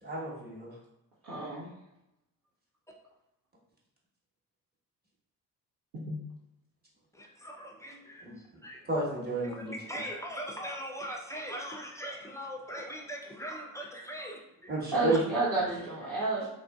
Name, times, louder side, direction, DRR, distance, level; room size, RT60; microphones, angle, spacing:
voice 1, 0.0-0.7 8.2-8.4 8.9-9.7 14.7-15.2, right 2 dB, 20° right, -5 dB, 1.2 m, -31 dB
voice 2, 1.2-1.7 5.9-6.1 14.9-16.5, right 3 dB, 60° right, -11 dB, 1.2 m, -30 dB
voice 3, 7.4-8.2 8.6-8.8 9.6-14.4 16.4-16.5, equal, 5° left, 0 dB, 0.5 m, -40 dB
3.1 x 2.5 x 2.3 m, 0.91 s
hypercardioid pair, 40°, 49 cm